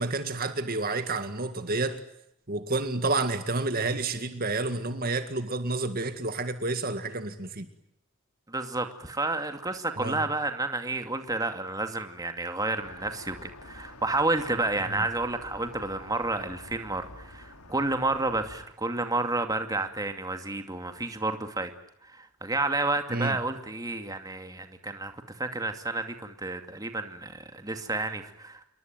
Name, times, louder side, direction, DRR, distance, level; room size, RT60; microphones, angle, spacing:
voice 1, 0.0-2.0 2.5-7.7 10.0-10.2 14.9-15.0 23.1-23.4, right 3 dB, 40° right, 9 dB, 2.1 m, -29 dB
voice 2, 8.5-21.7 22.0-28.7, right 2 dB, 15° right, 7 dB, 2.4 m, -30 dB
sound 1, 12.8-18.7, left 2 dB, 85° left, 3.9 m, -48 dB
28.5 x 23.0 x 9.1 m, 0.75 s
head